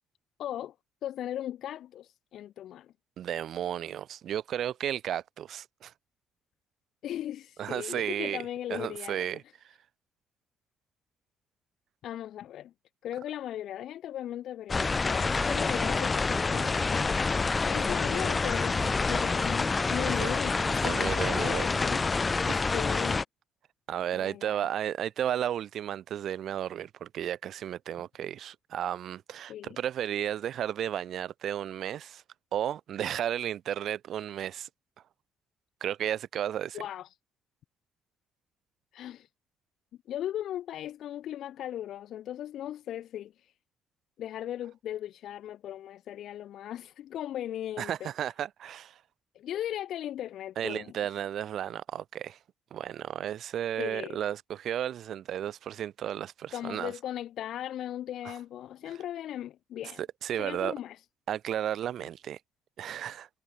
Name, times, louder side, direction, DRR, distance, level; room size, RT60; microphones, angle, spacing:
voice 1, 0.4-0.7 1.0-2.9 7.0-9.2 12.0-12.7 13.0-17.2 17.6-22.1 22.7-23.2 24.1-24.7 29.5-29.8 36.7-37.1 38.9-39.3 40.1-43.3 44.2-48.1 49.3-50.9 53.8-54.2 56.5-60.0 60.4-61.0, left 11 dB, 70° left, 3.7 m, -37 dB
voice 2, 3.2-5.9 7.6-8.4 8.7-9.4 20.1-20.3 20.8-21.6 22.5-22.6 23.9-32.2 32.5-34.7 35.8-36.8 47.8-49.0 50.6-52.4 52.7-56.9 58.2-58.3 60.0-60.7 61.3-62.4 62.8-63.3, right 10 dB, 65° right, 3.8 m, -33 dB
sound 1, 14.7-23.2, left 4 dB, 25° left, 0.4 m, -27 dB
cardioid pair, 100°, 0 cm